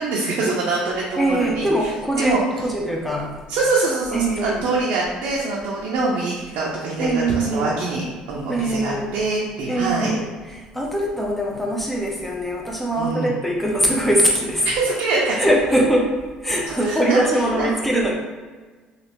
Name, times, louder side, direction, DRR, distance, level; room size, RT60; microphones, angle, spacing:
voice 1, 0.0-2.4 3.5-10.1 13.0-13.3 14.6-15.5 16.8-17.2 17.5-17.7, right 3 dB, 75° right, -5 dB, 0.6 m, -24 dB
voice 2, 1.2-3.4 4.1-4.6 7.0-7.7 8.5-9.1 9.7-10.3 10.5-14.7 15.4-16.1 16.4-18.1, right 1 dB, 5° left, -1 dB, 0.7 m, -22 dB
3.1 x 2.4 x 2.9 m, 1.4 s
supercardioid pair, 90°, 3 cm